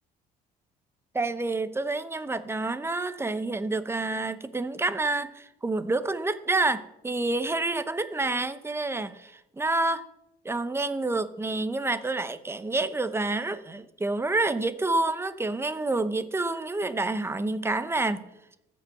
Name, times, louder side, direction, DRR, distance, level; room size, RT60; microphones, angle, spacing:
voice 1, 1.1-10.1 10.4-18.3, right 2 dB, 15° right, 12 dB, 0.8 m, -28 dB
14.0 x 5.4 x 7.7 m, 0.87 s
cardioid pair, 110°, 17 cm